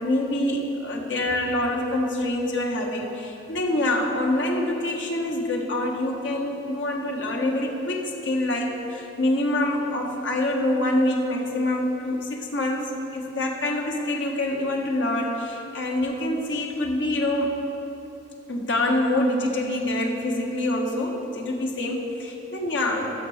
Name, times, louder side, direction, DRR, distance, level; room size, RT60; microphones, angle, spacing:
voice 1, 0.0-17.5 18.5-23.1, left 1 dB, 90° left, 0 dB, 1.5 m, -26 dB
15.0 x 6.8 x 5.0 m, 3.0 s
head